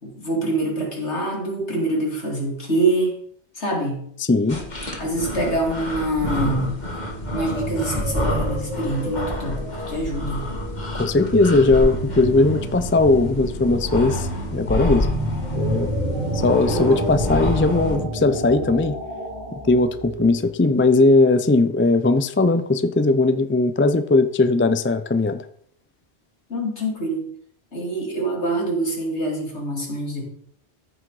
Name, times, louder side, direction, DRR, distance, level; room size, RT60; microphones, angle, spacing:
voice 1, 0.0-3.1 3.6-4.0 5.0-6.7 7.3-10.5 16.7-16.9 26.5-27.2 27.7-30.2, right 1 dB, 80° left, -1 dB, 3.2 m, -25 dB
voice 2, 4.2-4.6 11.0-15.1 15.5-15.9 16.3-19.0 19.6-25.4, left 3 dB, 15° left, 10 dB, 0.4 m, -19 dB
sound 1, 4.5-18.0, left 1 dB, 40° left, 2.1 m, -29 dB
sound 2, 6.5-20.6, right 1 dB, 35° right, 3.1 m, -30 dB
14.0 x 6.3 x 4.8 m, 0.64 s
omnidirectional pair, 1.2 m